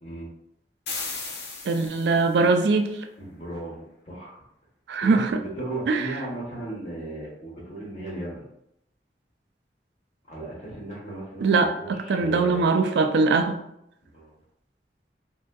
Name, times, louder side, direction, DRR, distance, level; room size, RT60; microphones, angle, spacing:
sound 1, 0.9-2.4, left 3 dB, 70° left, 0.5 m, -35 dB
voice 1, 1.7-2.9 4.9-5.3 5.9-6.1 11.4-13.6, right 4 dB, 80° right, 6 dB, 0.3 m, -21 dB
voice 2, 3.2-4.3 5.0-8.5 10.3-12.7 14.0-14.3, right 1 dB, 40° left, -4 dB, 1.1 m, -36 dB
3.5 x 2.6 x 2.2 m, 0.78 s
head